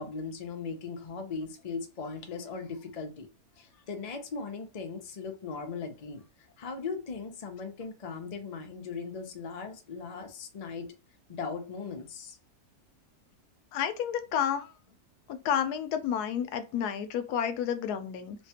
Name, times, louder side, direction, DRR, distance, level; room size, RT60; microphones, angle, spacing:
voice 1, 0.0-3.3 3.6-6.2 6.6-10.9 11.3-12.4, left 5 dB, 50° left, 0.4 m, -38 dB
voice 2, 13.7-14.7 15.3-18.4, left 8 dB, 85° left, 1.1 m, -30 dB
3.2 x 2.1 x 2.8 m
omnidirectional pair, 1.6 m